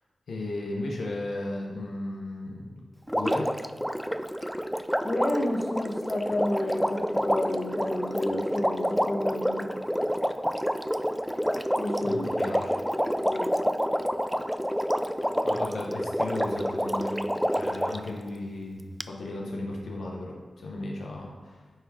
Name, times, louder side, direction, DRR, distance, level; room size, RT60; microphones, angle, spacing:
voice 1, 0.3-2.8 3.1-3.5 12.0-12.9 15.4-17.2 17.5-21.6, left 2 dB, 90° left, -2 dB, 0.9 m, -35 dB
Water, 3.1-18.1 19.0-19.1, equal, ahead, 0.4 m, -28 dB
voice 2, 5.0-9.7 11.8-12.2 13.2-13.5, left 1 dB, 40° left, 1 dB, 1.2 m, -30 dB
9.0 x 3.6 x 4.8 m, 1.4 s
cardioid pair, 45°, 0 cm